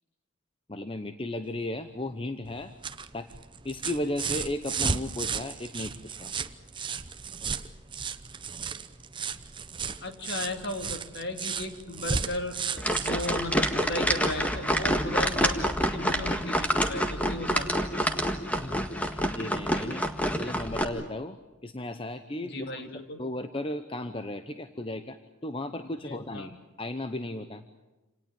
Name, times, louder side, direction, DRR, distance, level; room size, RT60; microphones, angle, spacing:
voice 1, 0.7-2.7 3.1-3.3 3.6-6.3 18.6-20.1 20.4-21.4 21.6-25.2 25.4-27.6, left 1 dB, 25° left, 9 dB, 0.9 m, -35 dB
sound 1, 2.5-14.5 15.8-15.9, right 5 dB, 25° right, 0.8 m, -35 dB
voice 2, 10.0-18.0 22.4-23.2 25.8-26.5, left 1 dB, 50° left, 6 dB, 2.7 m, -36 dB
sound 2, 12.8-20.8, equal, 5° left, 1.7 m, -27 dB
28.0 x 18.5 x 8.8 m, 1.1 s
head